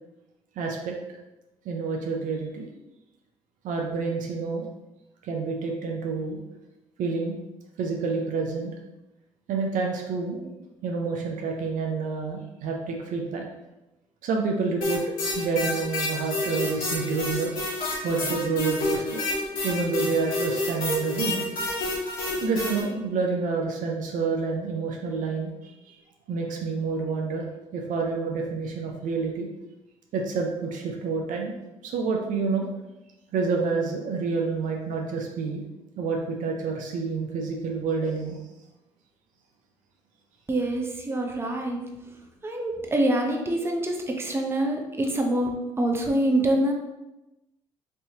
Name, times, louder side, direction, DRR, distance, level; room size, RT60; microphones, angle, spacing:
voice 1, 0.6-1.0 1.6-2.7 3.6-4.7 5.2-6.4 7.0-7.4 7.8-8.7 9.5-10.5 10.8-13.4 14.2-15.0 15.3-17.5 18.0-19.3 19.6-21.4 22.4-25.5 26.3-27.5 27.7-29.5 30.1-31.5 31.8-32.7 33.3-35.6 36.0-38.4 43.6-43.7, right 4 dB, 70° right, 1 dB, 0.6 m, -28 dB
sound 1, 14.8-22.8, left 2 dB, 80° left, 1.2 m, -29 dB
voice 2, 40.5-41.9 42.4-46.7, right 1 dB, 15° right, 2 dB, 0.6 m, -25 dB
3.3 x 2.8 x 2.7 m, 0.97 s
supercardioid pair, 65°, 14 cm